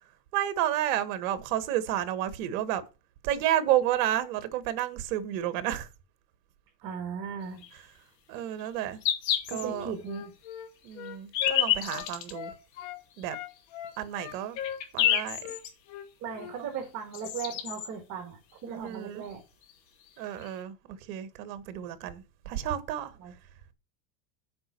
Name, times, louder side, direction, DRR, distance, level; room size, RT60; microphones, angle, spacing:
voice 1, 0.3-2.8 3.2-5.9 8.3-9.0 9.5-9.9 10.8-12.5 13.2-13.4 14.0-14.6 14.9-15.4 18.7-19.3 20.2-23.1, right 12 dB, 55° right, 1.5 m, -31 dB
voice 2, 6.8-7.7 9.5-10.3 16.2-19.4 23.2-23.3, right 6 dB, 35° right, 2.4 m, -37 dB
sound 1, 7.6-7.7 8.6-8.7 9.0-9.6 10.1-10.2 11.1-12.3 13.2-13.3 13.9-14.0 14.3-15.7 16.8-16.9 17.1-17.9 19.3-19.4 19.6-19.7 20.4-20.5, left 11 dB, 85° left, 3.3 m, -28 dB
Wind instrument woodwind instrument, 9.6-13.0 13.3-16.6, left 10 dB, 45° left, 1.2 m, -40 dB
7.8 x 5.2 x 6.6 m
supercardioid pair, 155°, 50 cm